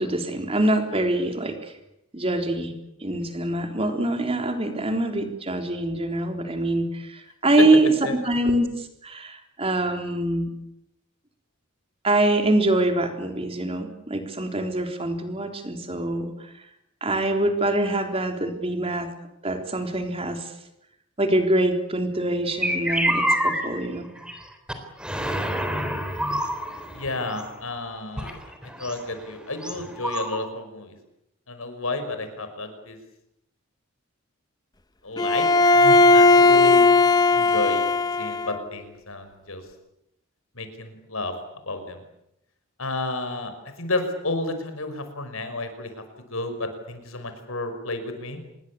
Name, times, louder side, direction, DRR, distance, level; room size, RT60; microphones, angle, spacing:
voice 1, 0.0-1.7 2.1-2.8 3.0-10.5 12.0-16.5 17.0-19.1 19.4-20.5 21.2-24.1, right 1 dB, 25° right, 5 dB, 3.7 m, -24 dB
sound 1, 22.5-23.7 24.0-24.4 24.7-24.8 25.0-27.6 28.2-30.5, equal, 5° right, 3.7 m, -27 dB
voice 2, 26.9-28.3 28.8-30.9 31.5-33.0 35.0-36.9 37.3-37.9 38.2-39.6 40.5-41.3 41.7-42.0 42.8-43.5 43.8-46.0 46.3-48.4, left 2 dB, 75° left, 8 dB, 5.6 m, -31 dB
Bowed string instrument, 35.2-38.6, left 3 dB, 20° left, 1.0 m, -17 dB
26.5 x 22.0 x 8.6 m, 0.82 s
head